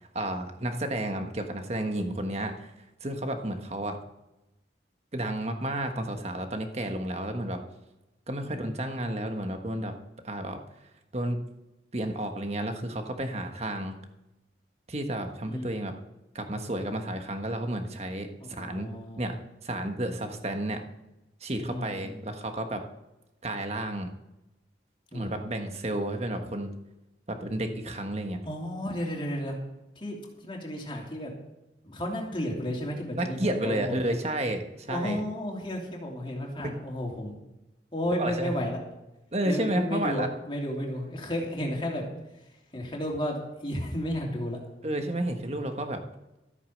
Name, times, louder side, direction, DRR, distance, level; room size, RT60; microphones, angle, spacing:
voice 1, 0.1-2.7 3.0-4.0 5.1-7.6 8.3-9.9 10.2-10.6 11.1-11.4 11.9-14.0 14.9-15.9 16.3-18.9 19.2-19.3 19.6-20.8 21.4-22.8 23.4-24.1 25.1-26.7 27.3-28.4 33.2-35.2 36.6-36.7 38.2-38.5 39.3-40.3 44.8-46.0, right 1 dB, 35° right, 5 dB, 1.4 m, -31 dB
voice 2, 8.4-8.8 15.4-15.8 18.4-19.4 21.6-22.3 25.1-25.3 28.4-29.6 30.0-31.3 31.8-34.2 34.9-37.4 37.9-38.8 39.4-42.0 42.7-44.6, equal, 30° left, -1 dB, 2.9 m, -33 dB
13.5 x 8.5 x 6.5 m, 0.95 s
head